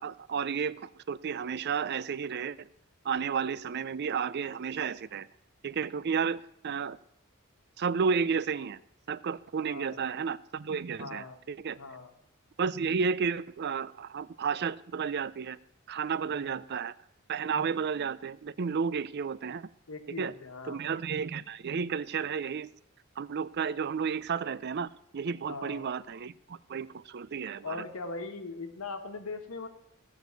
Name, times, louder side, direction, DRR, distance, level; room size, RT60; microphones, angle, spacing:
voice 1, 0.0-2.7 3.0-5.3 5.6-7.0 7.8-8.8 9.1-11.8 12.6-15.6 15.9-17.0 17.3-19.7 20.2-20.3 20.7-22.7 23.2-27.8, right 6 dB, 50° right, 0.4 m, -32 dB
voice 2, 9.7-10.0 11.0-11.4 11.7-12.1 16.3-16.6 19.9-20.8 25.5-25.8 27.6-29.7, left 3 dB, 90° left, 1.5 m, -40 dB
15.0 x 6.3 x 8.1 m
head